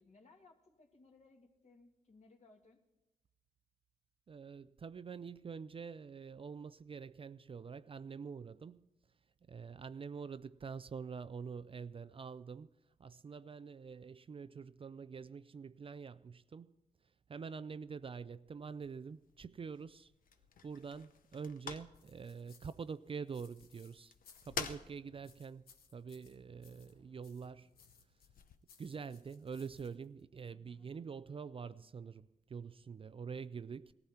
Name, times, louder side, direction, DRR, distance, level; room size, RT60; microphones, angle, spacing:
voice 1, 0.0-2.8 30.5-30.9, left 3 dB, 50° left, 2.2 m, -64 dB
voice 2, 4.3-8.9 9.4-12.7 13.0-16.7 17.3-20.1 20.6-24.1 24.4-25.6 25.9-27.7 28.8-33.9, right 6 dB, 35° right, 0.4 m, -46 dB
sound 1, 18.6-28.6, left 6 dB, 65° left, 0.9 m, -51 dB
sound 2, 21.9-24.8 25.2-27.0 27.2-30.2, left 6 dB, 90° left, 1.2 m, -65 dB
18.0 x 14.5 x 4.3 m
cardioid pair, 75°, 15 cm